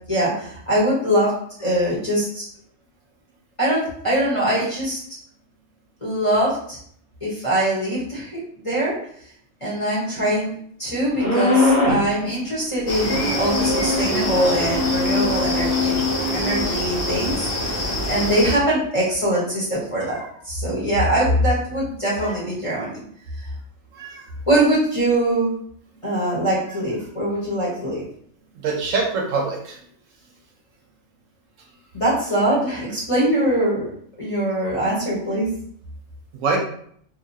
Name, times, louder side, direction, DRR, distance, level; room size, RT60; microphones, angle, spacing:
voice 1, 0.1-2.4 3.6-5.0 6.0-6.8 7.2-8.3 8.6-9.0 9.6-10.5 10.8-15.9 16.3-23.0 24.5-25.5 26.0-28.0 31.9-33.9 34.2-35.5, right 1 dB, 25° left, -8 dB, 0.9 m, -22 dB
sound 1, 11.2-12.1 13.0-16.7, left 2 dB, 85° left, 1.2 m, -22 dB
sound 2, 12.9-18.6, left 1 dB, 50° left, 0.7 m, -26 dB
voice 2, 23.9-24.2 28.6-29.8 34.5-34.7 36.4-36.6, right 4 dB, 75° right, 1 dB, 0.9 m, -25 dB
2.8 x 2.3 x 2.6 m, 0.63 s
omnidirectional pair, 1.4 m